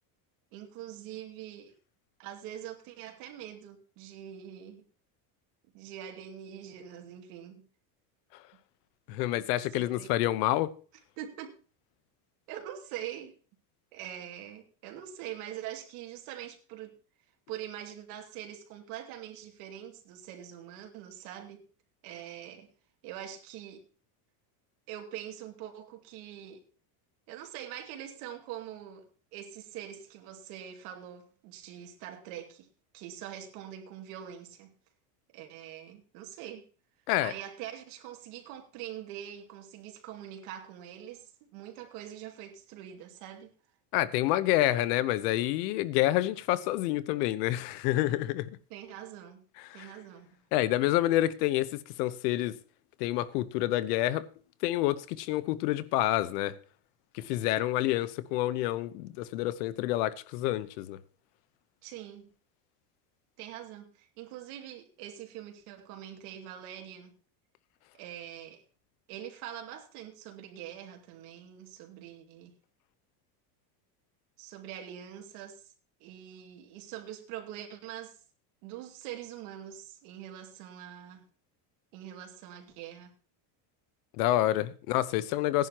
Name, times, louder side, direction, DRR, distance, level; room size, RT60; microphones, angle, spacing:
voice 1, 0.5-1.7 2.2-4.9 5.7-7.6 9.7-10.1 11.2-11.6 12.5-13.4 13.9-16.9 17.5-21.7 22.0-22.7 23.0-23.8 24.9-26.6 27.3-32.7 32.9-34.7 35.3-36.7 37.2-43.5 48.7-49.4 49.7-50.4 61.8-62.3 63.4-67.2 67.9-68.6 69.1-72.5 74.4-75.7 76.0-78.2 78.6-81.3 81.9-83.1, right 11 dB, 70° right, 2.6 m, -44 dB
voice 2, 9.1-10.7 37.1-37.3 43.9-48.5 49.7-49.9 50.5-51.7 52.0-52.5 53.0-54.3 54.6-56.5 57.1-61.0 84.2-85.7, left 15 dB, 80° left, 1.0 m, -28 dB
17.0 x 10.5 x 3.0 m
cardioid pair, 165°, 46 cm